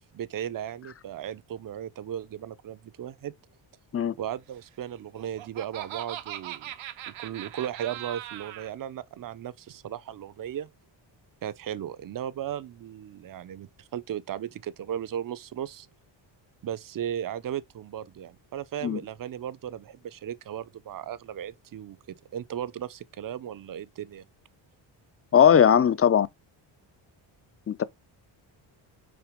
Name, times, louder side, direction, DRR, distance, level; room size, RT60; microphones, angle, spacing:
voice 1, 0.1-3.3 4.2-6.7 7.1-10.7 11.4-15.9 16.6-24.2, right 10 dB, 45° right, 0.7 m, -36 dB
Laughter, 4.9-8.7, right 12 dB, 80° right, 1.0 m, -39 dB
voice 2, 25.3-26.3 27.7-27.8, left 8 dB, 30° left, 0.6 m, -19 dB
6.0 x 4.4 x 5.1 m
cardioid pair, 105°, 47 cm